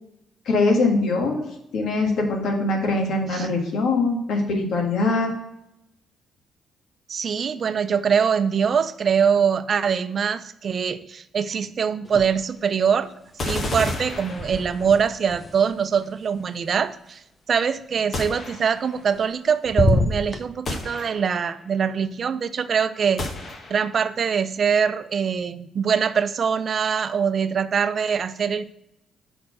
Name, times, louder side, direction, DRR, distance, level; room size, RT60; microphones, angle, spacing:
voice 1, 0.4-1.4 1.7-5.3, left 3 dB, 75° left, 1 dB, 1.6 m, -22 dB
voice 2, 7.1-13.1 13.4-17.2 17.5-23.3 23.7-28.6, right 7 dB, 50° right, 13 dB, 0.5 m, -23 dB
sound 1, 12.0-12.8 13.0-17.1 18.8-19.4 19.6-20.4, left 2 dB, 20° left, 0.8 m, -28 dB
sound 2, 13.4-15.0 18.1-19.0 20.7-21.6 23.2-24.0, left 2 dB, 45° left, 1.2 m, -32 dB
5.9 x 4.2 x 6.3 m, 0.81 s
cardioid pair, 90°, 0 cm